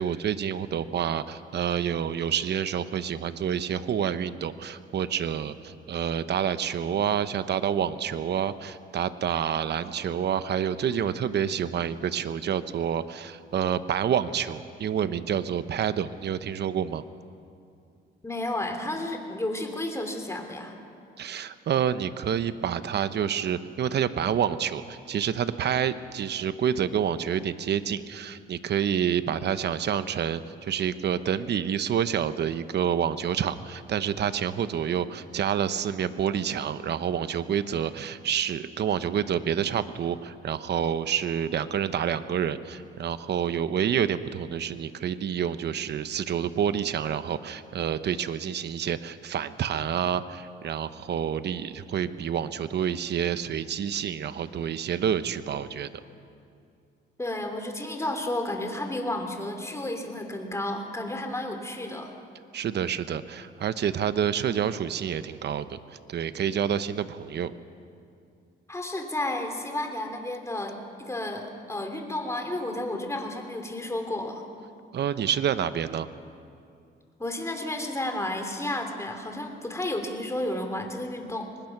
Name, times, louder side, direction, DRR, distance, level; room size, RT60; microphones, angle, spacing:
voice 1, 0.0-17.0 21.2-55.9 62.5-65.8 66.1-67.5 74.9-76.1, right 8 dB, 60° right, 12 dB, 1.0 m, -28 dB
voice 2, 18.2-20.8 57.2-62.1 68.7-74.4 77.2-81.5, left 1 dB, 15° left, 4 dB, 3.2 m, -32 dB
24.0 x 20.0 x 6.0 m, 2.5 s
cardioid pair, 90°, 20 cm